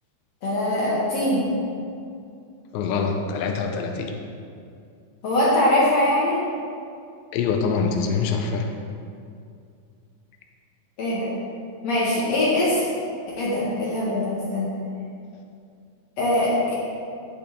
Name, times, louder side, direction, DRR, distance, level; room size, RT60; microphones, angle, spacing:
voice 1, 0.4-1.4 5.2-6.4 11.0-11.3 11.8-12.8 13.4-14.7 16.2-16.7, left 1 dB, 60° left, -7 dB, 1.9 m, -22 dB
voice 2, 2.7-4.1 7.3-8.7, left 5 dB, 90° left, 3 dB, 2.9 m, -24 dB
10.5 x 8.9 x 3.6 m, 2.4 s
omnidirectional pair, 5.1 m